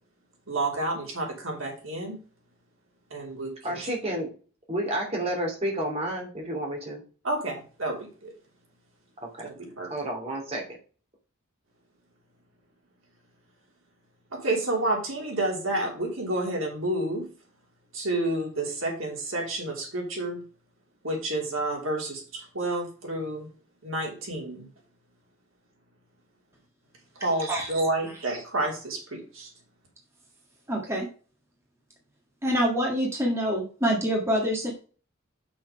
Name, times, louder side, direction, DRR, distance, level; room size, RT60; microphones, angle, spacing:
voice 1, 0.5-2.2 3.1-3.8 7.2-8.3 9.4-9.9 14.3-17.3 17.9-20.4 21.0-23.5 23.8-24.7 27.1-29.5, right 2 dB, 75° right, 0 dB, 3.0 m, -30 dB
voice 2, 3.6-4.3 4.7-7.0 9.2-9.5 9.9-10.8, right 1 dB, 30° right, 0 dB, 2.7 m, -30 dB
voice 3, 30.7-31.1 32.4-34.7, equal, 15° right, -1 dB, 1.7 m, -26 dB
7.0 x 6.2 x 4.8 m, 0.38 s
head